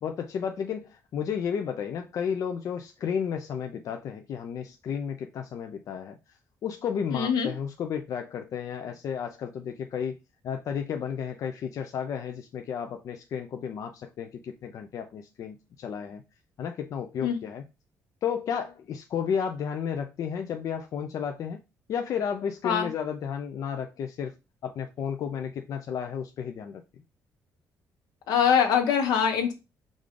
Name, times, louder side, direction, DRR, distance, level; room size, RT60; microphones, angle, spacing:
voice 1, 0.0-10.2 10.4-16.2 16.6-17.6 18.2-21.6 21.9-24.3 24.6-26.8, left 7 dB, 55° left, 0.4 m, -32 dB
voice 2, 7.1-7.5 17.2-17.4 22.6-22.9 28.3-29.5, left 7 dB, 80° left, 1.1 m, -23 dB
5.0 x 2.4 x 3.7 m
cardioid pair, 110°, 7 cm